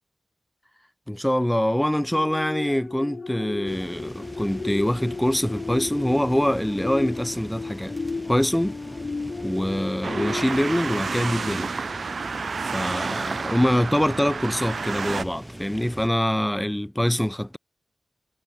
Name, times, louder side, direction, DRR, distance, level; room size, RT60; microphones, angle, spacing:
voice 1, 1.1-7.9 8.3-8.8 9.4-11.7 12.6-17.6, equal, 10° left, 0.6 m, -24 dB
sound 1, 2.1-12.0 12.4-12.6, left 4 dB, 60° left, 5.1 m, -35 dB
sound 2, 3.7-16.1, right 1 dB, 10° right, 6.4 m, -41 dB
sound 3, 10.0-15.3, right 5 dB, 70° right, 3.6 m, -30 dB
cardioid pair, 40°, 0 cm